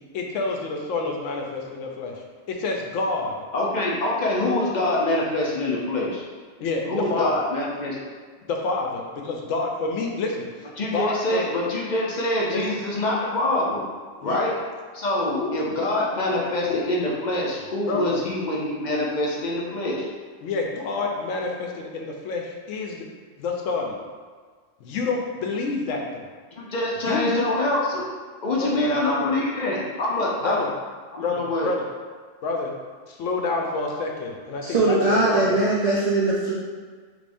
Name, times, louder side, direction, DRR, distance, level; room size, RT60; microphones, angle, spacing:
voice 1, 0.1-2.1 2.5-3.3 6.6-7.3 8.5-10.5 10.9-11.4 12.5-12.6 14.2-14.4 15.4-15.5 15.9-16.0 17.9-18.2 20.4-23.1 23.4-24.1 24.8-26.3 27.0-27.4 28.6-29.4 30.4-30.7 31.2-31.9 32.4-32.7 33.1-35.0 35.2-35.6, left 3 dB, 80° left, 1 dB, 0.9 m, -28 dB
voice 2, 3.5-6.2 6.9-8.0 10.8-13.8 14.2-14.6 14.9-20.1 26.6-28.1 28.4-30.6 31.1-31.7, left 1 dB, 50° left, -4 dB, 0.5 m, -25 dB
voice 3, 34.6-36.5, right 2 dB, 55° right, -7 dB, 0.4 m, -21 dB
3.4 x 3.4 x 2.5 m, 1.5 s
omnidirectional pair, 1.3 m